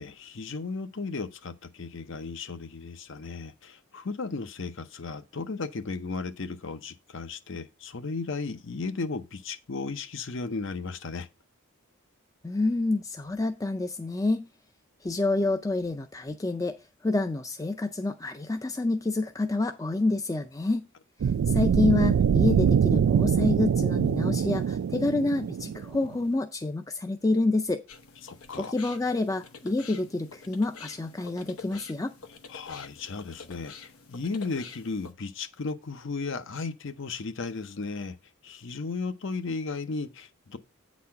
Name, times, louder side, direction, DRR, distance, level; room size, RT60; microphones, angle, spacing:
voice 1, 0.0-11.3 28.2-28.7 32.5-38.2 38.4-40.6, left 4 dB, 60° left, 0.7 m, -35 dB
voice 2, 12.4-14.5 15.0-16.8 17.0-20.9 21.5-27.8 28.6-32.1, left 2 dB, 15° left, 0.4 m, -28 dB
sound 1, 21.2-26.1, right 7 dB, 80° right, 0.3 m, -24 dB
sound 2, 27.9-35.1, left 5 dB, 90° left, 0.9 m, -47 dB
8.5 x 4.2 x 5.7 m
head